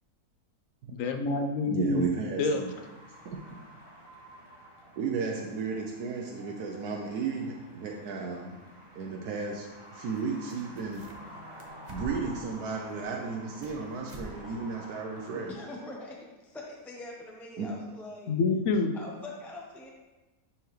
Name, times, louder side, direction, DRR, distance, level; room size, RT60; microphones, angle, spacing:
voice 1, 0.9-2.0 2.4-2.6 18.3-18.9, left 3 dB, 65° left, 6 dB, 1.0 m, -27 dB
voice 2, 1.7-2.7 3.2-3.6 5.0-8.6 8.9-11.0 11.9-15.5 17.6-17.7, right 5 dB, 80° right, 0 dB, 1.3 m, -34 dB
sound 1, 2.5-15.5, equal, 15° right, 1.1 m, -50 dB
sound 2, 10.1-10.2 10.5-11.3 11.6-12.4 12.9-13.8 14.1-14.3 14.6-14.7 15.3-15.4, right 1 dB, 35° right, 0.8 m, -45 dB
voice 3, 15.5-18.3 18.9-19.9, left 2 dB, ahead, -2 dB, 0.7 m, -43 dB
11.0 x 4.5 x 3.2 m, 1.1 s
omnidirectional pair, 1.6 m